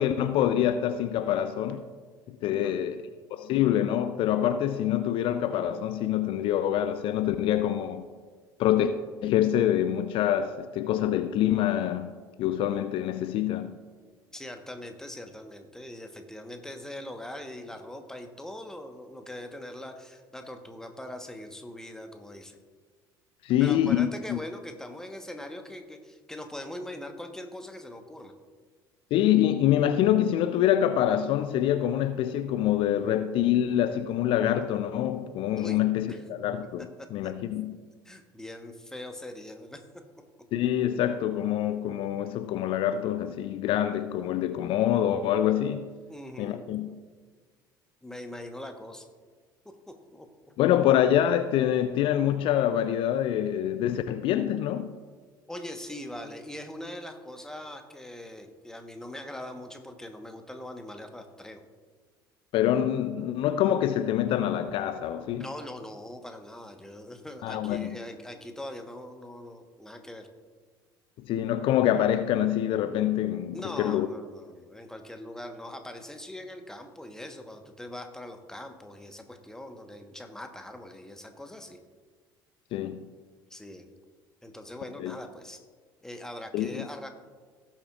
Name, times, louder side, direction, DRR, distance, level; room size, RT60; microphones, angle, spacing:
voice 1, 0.0-1.8 2.4-3.0 3.3-8.0 8.6-8.9 9.2-12.1 12.4-13.7 23.4-24.4 29.1-37.8 40.5-45.9 46.4-46.9 50.6-54.9 62.5-65.5 67.4-67.9 71.2-74.1 82.7-83.1 85.0-85.1 86.5-86.9, left 11 dB, 50° left, 10 dB, 0.5 m, -25 dB
voice 2, 2.5-2.9 14.3-22.6 23.6-28.3 35.6-35.8 36.1-36.2 37.2-37.3 38.0-39.8 46.1-46.7 48.0-49.1 49.6-50.3 55.5-61.6 65.4-70.3 73.5-81.8 83.5-83.9 84.4-85.6 86.0-87.1, left 1 dB, 5° left, 5 dB, 1.2 m, -41 dB
17.0 x 7.3 x 2.4 m, 1.5 s
figure-of-eight pair, 60°, 11 cm